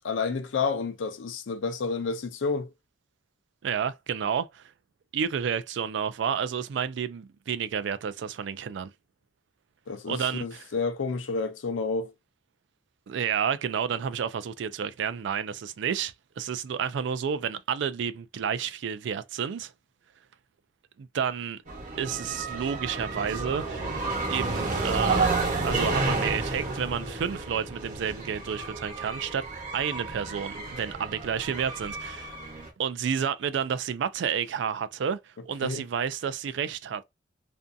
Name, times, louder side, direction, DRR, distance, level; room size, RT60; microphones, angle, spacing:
voice 1, 0.0-2.7 9.9-12.1 35.6-35.8, left 4 dB, 85° left, 0.5 m, -30 dB
voice 2, 3.6-4.7 5.1-8.9 10.0-10.7 13.1-19.7 21.0-21.6 22.0-24.0 24.3-29.4 29.7-32.3 32.8-37.0, right 7 dB, 70° right, 0.3 m, -30 dB
sound 1, 21.7-32.7, right 3 dB, 45° right, 1.0 m, -31 dB
2.6 x 2.2 x 2.5 m
head